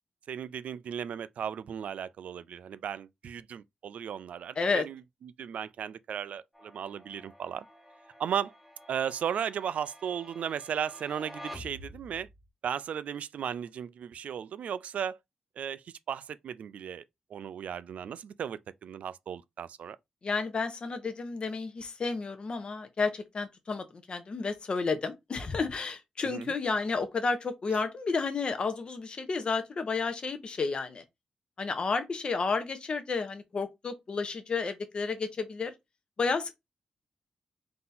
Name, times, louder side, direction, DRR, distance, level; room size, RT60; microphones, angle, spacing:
voice 1, 0.3-7.7 8.2-8.5 8.9-12.3 12.6-15.2 15.6-17.0 17.3-20.0 26.2-26.5, right 8 dB, 75° right, 0.4 m, -36 dB
sound 1, 6.5-12.5, left 1 dB, 5° left, 1.3 m, -49 dB
voice 2, 20.2-31.0 31.6-35.7 36.2-36.5, left 4 dB, 45° left, 0.9 m, -31 dB
3.9 x 2.8 x 3.9 m
cardioid pair, 100°, 2 cm